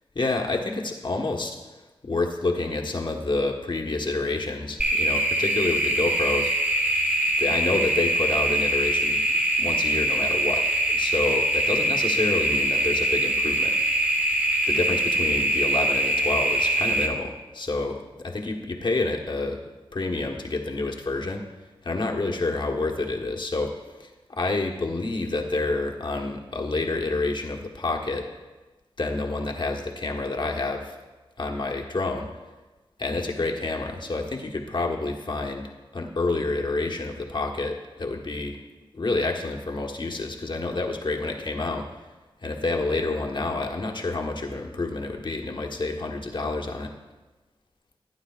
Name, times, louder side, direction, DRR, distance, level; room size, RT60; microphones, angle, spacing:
voice 1, 0.1-1.6 2.0-6.5 7.4-9.3 9.6-13.7 14.7-18.0 18.2-19.6 19.9-21.4 21.8-23.7 24.0-28.3 29.0-30.9 31.4-32.3 33.0-38.6 38.9-41.9 42.4-46.9, left 3 dB, 50° left, 2 dB, 1.4 m, -28 dB
sound 1, 4.8-17.1, right 1 dB, 15° right, 1.5 m, -23 dB
16.5 x 9.0 x 2.5 m, 1.2 s
cardioid pair, 50°, 10 cm